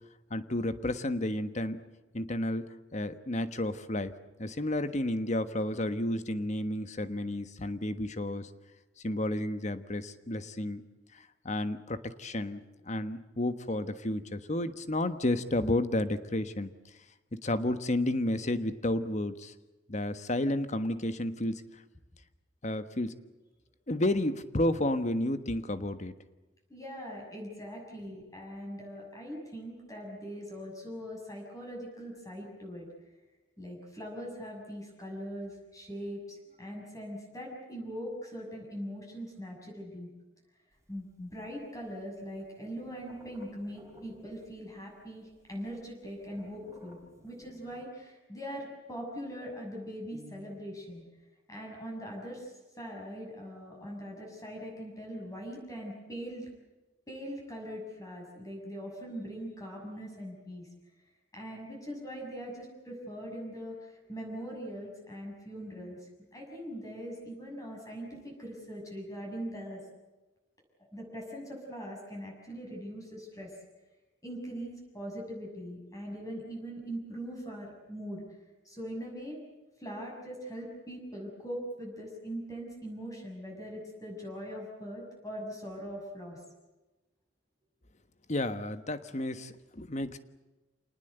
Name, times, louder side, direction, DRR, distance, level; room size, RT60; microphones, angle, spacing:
voice 1, 0.3-1.8 2.1-4.1 4.4-8.5 9.0-10.8 11.4-16.7 17.3-19.5 19.9-21.6 22.6-23.1 23.9-26.1 88.3-90.2, left 1 dB, 40° left, 11 dB, 1.4 m, -31 dB
voice 2, 26.7-32.9 33.6-40.1 40.9-47.0 47.2-51.0 51.5-56.4 57.1-60.7 61.3-69.8 70.9-73.5 74.2-78.2 78.6-79.4 79.8-86.4, equal, 20° left, -1 dB, 6.7 m, -41 dB
sound 1, 40.7-41.9 42.2-44.8 45.0-45.1 45.3-47.8, equal, 15° right, 3.9 m, -55 dB
27.5 x 19.5 x 8.0 m, 1.1 s
head